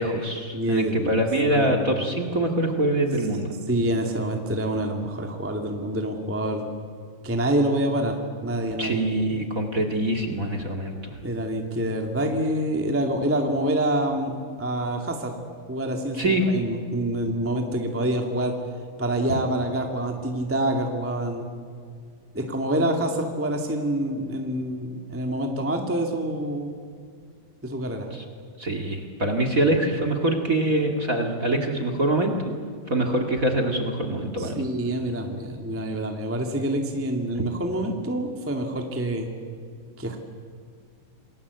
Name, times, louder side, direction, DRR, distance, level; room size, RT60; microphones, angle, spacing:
voice 1, 0.0-3.5 8.8-11.2 16.2-16.5 28.1-28.2 28.6-32.3 32.9-34.6, right 1 dB, 30° right, 5 dB, 2.0 m, -24 dB
voice 2, 0.5-1.2 1.5-2.0 3.7-6.6 7.2-9.0 11.2-15.3 15.7-18.5 19.0-21.5 22.3-26.7 27.6-28.1 34.4-39.3 40.0-40.2, right 1 dB, 5° right, 3 dB, 1.4 m, -26 dB
28.0 x 20.5 x 8.2 m, 2.1 s
omnidirectional pair, 4.0 m